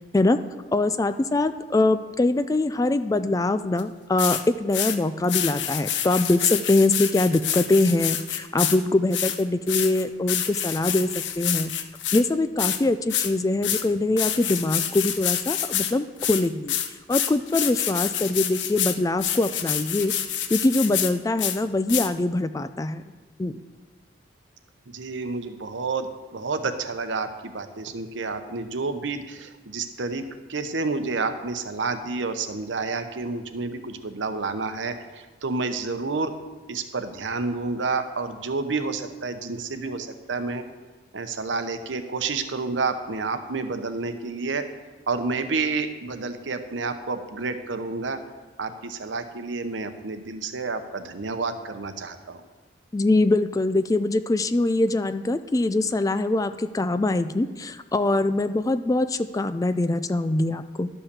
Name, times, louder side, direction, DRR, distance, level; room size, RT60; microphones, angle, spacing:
voice 1, 0.7-11.1 11.4-11.7 12.1-16.8 17.1-20.1 20.5-23.0 23.4-23.6 52.9-60.9, left 2 dB, 20° left, 12 dB, 0.3 m, -23 dB
sound 1, 3.8-3.9 4.2-4.4 4.7-5.0 5.2-8.8 9.1-12.2 12.6-12.8 13.1-13.3 13.6-13.8 14.2-15.9 16.2-21.1 21.4-21.6 21.9-22.1, left 10 dB, 75° left, 0.7 m, -27 dB
voice 2, 24.9-30.2 30.5-36.3 36.7-40.6 41.1-44.6 45.1-48.2 48.6-52.4, right 4 dB, 85° right, 8 dB, 0.9 m, -29 dB
11.5 x 5.7 x 6.7 m, 1.3 s
head